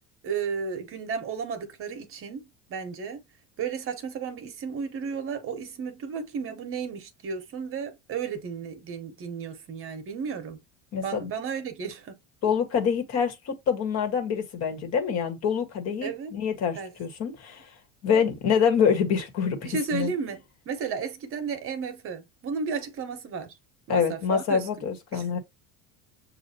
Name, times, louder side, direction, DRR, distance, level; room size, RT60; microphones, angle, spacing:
voice 1, 0.2-2.4 2.7-3.2 3.6-10.6 11.0-12.2 16.0-16.3 16.7-16.9 18.1-18.3 19.6-20.4 20.7-23.6 23.9-24.7 25.1-25.3, right 5 dB, 40° right, 1.0 m, -33 dB
voice 2, 10.9-11.2 12.4-17.7 18.0-20.1 23.9-25.4, left 6 dB, 50° left, 1.4 m, -26 dB
6.6 x 2.5 x 2.8 m
cardioid pair, 130°, 34 cm